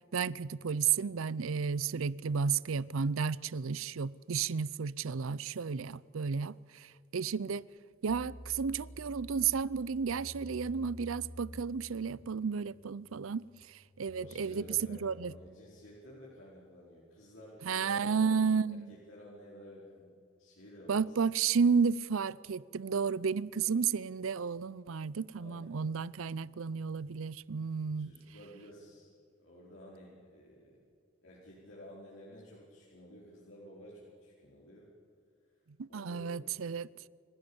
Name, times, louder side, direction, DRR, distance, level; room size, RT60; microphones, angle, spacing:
voice 1, 0.1-6.5 7.1-7.6 8.0-13.4 14.0-14.6 14.9-15.3 17.7-18.9 20.9-28.1 35.8-36.9, right 6 dB, 80° right, 0.5 m, -32 dB
sound 1, 8.1-15.6, equal, 35° left, 2.8 m, -51 dB
voice 2, 14.1-20.1 20.4-21.4 25.4-25.8 27.9-30.8 31.2-34.9 35.5-35.6 35.9-36.4, equal, 70° left, 4.6 m, -52 dB
29.0 x 16.0 x 7.1 m
head